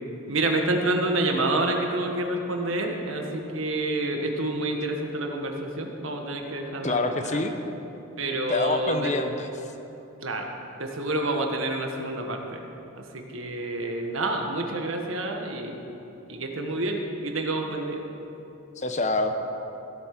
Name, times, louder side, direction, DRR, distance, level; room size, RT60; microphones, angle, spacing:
voice 1, 0.3-6.9 8.2-9.1 10.2-10.5 10.8-12.6 13.3-15.8 16.3-18.0, right 2 dB, 85° right, 3 dB, 1.5 m, -28 dB
voice 2, 6.8-7.5 8.5-9.5 18.8-19.3, left 2 dB, 35° left, 6 dB, 0.9 m, -26 dB
16.0 x 8.7 x 6.0 m, 2.9 s
head